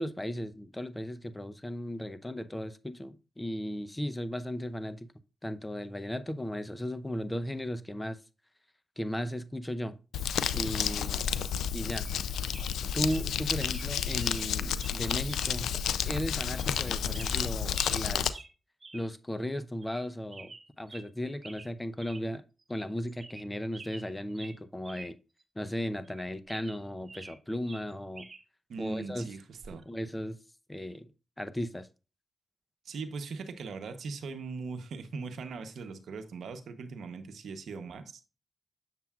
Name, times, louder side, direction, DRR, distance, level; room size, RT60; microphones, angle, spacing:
voice 1, 0.0-5.1 5.4-8.2 9.0-10.0 10.5-11.3 11.7-12.1 12.9-15.7 16.1-18.3 18.9-22.4 22.7-25.2 25.6-28.3 28.8-29.3 29.9-30.4 30.7-31.1 31.4-31.9, equal, 15° left, 0.7 m, -36 dB
Crumpling crinkling, 10.1-18.3, left 8 dB, 90° left, 0.4 m, -31 dB
sound 1, 12.0-12.2 12.5-12.8 13.1-13.2 13.6-13.9 14.2-14.5 14.8-15.0 15.3-15.5 15.9-16.0 16.6-16.8 17.1-18.0 18.3-18.5 18.8-19.1 19.4-19.5 19.8-20.0 20.3-21.1 21.4-21.7 22.0-22.2 22.6-22.7 23.1-23.5 23.7-25.1 25.4-25.5 26.0-27.4 27.7-28.4 29.6-29.8, right 3 dB, 45° right, 1.0 m, -48 dB
voice 2, 28.7-29.8 32.8-38.2, right 4 dB, 80° right, 0.8 m, -40 dB
7.5 x 6.9 x 2.4 m
cardioid pair, 50°, 0 cm